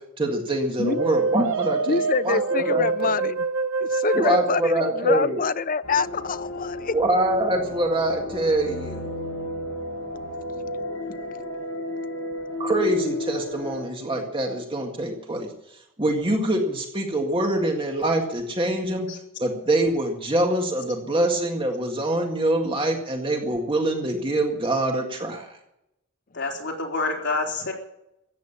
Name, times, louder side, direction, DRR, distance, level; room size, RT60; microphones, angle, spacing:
voice 1, 0.2-3.1 4.1-5.4 6.9-9.0 12.6-15.5 16.0-19.1 19.4-25.5, right 1 dB, 25° right, 1.9 m, -24 dB
sound 1, 0.8-5.6, right 4 dB, 80° right, 1.3 m, -26 dB
voice 2, 1.9-3.4 3.8-6.9 10.2-10.3 10.6-10.8 11.1-11.2, left 5 dB, 45° left, 0.6 m, -26 dB
sound 2, 5.8-13.8, left 1 dB, 80° left, 6.1 m, -33 dB
voice 3, 26.3-27.7, left 3 dB, 60° left, 4.1 m, -27 dB
14.5 x 9.3 x 9.8 m
head